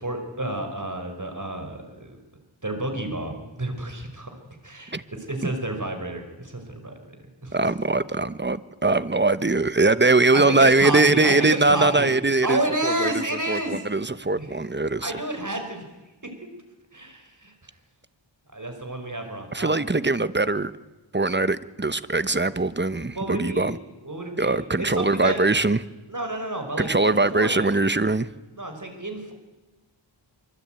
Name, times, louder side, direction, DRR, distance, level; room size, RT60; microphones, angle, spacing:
voice 1, 0.0-2.2 2.6-4.3 4.6-7.6 10.3-12.1 12.4-13.8 14.3-14.6 15.0-15.8 16.2-16.3 16.9-17.5 18.5-19.7 23.1-23.7 24.0-25.4 26.1-27.7 28.6-29.3, right 1 dB, 40° right, 5 dB, 5.1 m, -30 dB
voice 2, 7.5-13.1 13.5-15.1 19.5-20.7 21.1-23.8 24.4-25.8 26.8-28.3, right 3 dB, 20° right, 14 dB, 1.0 m, -21 dB
24.5 x 24.5 x 9.0 m, 1.1 s
wide cardioid pair, 65°, 49 cm